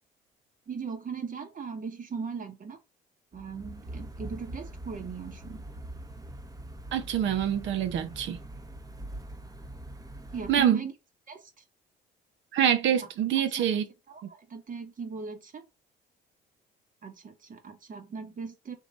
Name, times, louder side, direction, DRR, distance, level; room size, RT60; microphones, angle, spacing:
voice 1, 0.7-2.8 3.3-5.7 10.3-10.9 11.3-11.5 13.0-13.1 13.6-13.7 14.1-15.6 17.0-18.8, right 5 dB, 40° right, 1.2 m, -38 dB
sound 1, 3.3-10.7, right 1 dB, 15° right, 0.9 m, -43 dB
voice 2, 6.9-8.4 10.5-10.8 12.5-13.9, right 9 dB, 65° right, 0.8 m, -25 dB
3.8 x 2.9 x 4.0 m
supercardioid pair, 65°, 21 cm